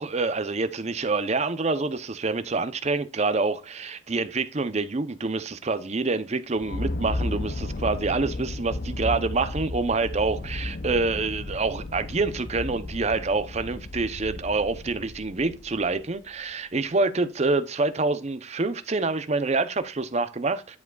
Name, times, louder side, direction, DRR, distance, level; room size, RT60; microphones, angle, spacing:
voice 1, 0.0-20.8, right 3 dB, 35° right, 0.6 m, -27 dB
sound 1, 6.6-16.2, left 2 dB, 50° left, 0.6 m, -34 dB
10.5 x 4.8 x 2.3 m
head